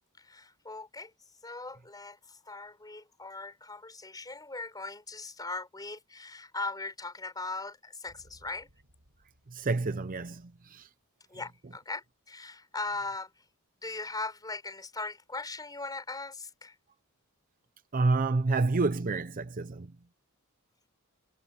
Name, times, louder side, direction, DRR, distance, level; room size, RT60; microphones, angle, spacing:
voice 1, 0.2-1.1 1.4-8.7 11.3-13.3 13.8-16.8, left 3 dB, 20° left, 4.2 m, -39 dB
sound 1, 8.0-10.7, equal, 75° right, 7.4 m, -63 dB
voice 2, 9.5-10.9 17.9-19.9, right 3 dB, 40° right, 0.6 m, -29 dB
head